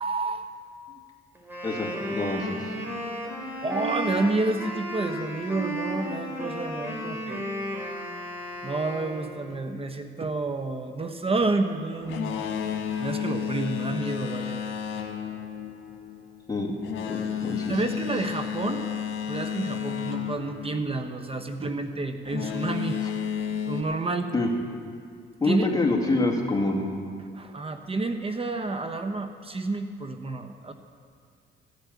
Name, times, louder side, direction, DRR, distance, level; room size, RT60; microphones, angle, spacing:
voice 1, 0.0-0.4 0.9-1.0 3.6-7.4 8.6-12.3 12.6-14.6 17.7-18.8 19.3-23.1 23.7-24.3 25.4-25.7 27.3-30.7, right 3 dB, 30° right, 7 dB, 0.9 m, -29 dB
Wind instrument woodwind instrument, 1.3-9.5, equal, 10° right, 4.1 m, -34 dB
voice 2, 1.6-2.6 16.5-16.7 17.1-17.8 24.3-24.5 25.4-26.9, left 2 dB, 20° left, 0 dB, 2.5 m, -26 dB
Boat Water vehicle, 12.0-21.4 22.2-23.8, left 8 dB, 80° left, 1.5 m, -32 dB
15.0 x 8.4 x 8.2 m, 2.2 s
cardioid pair, 90°, 20 cm